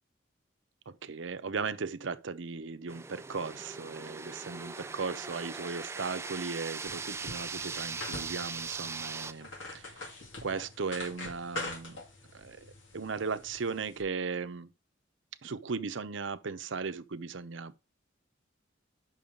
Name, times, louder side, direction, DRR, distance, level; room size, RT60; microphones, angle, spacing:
voice 1, 0.9-10.0 10.4-12.0 12.3-14.7 15.4-17.8, right 4 dB, 75° right, 0.7 m, -37 dB
sound 1, 2.9-9.3, right 4 dB, 15° right, 0.3 m, -40 dB
sound 2, 6.9-14.0, left 2 dB, 75° left, 2.3 m, -44 dB
8.6 x 6.1 x 3.7 m
head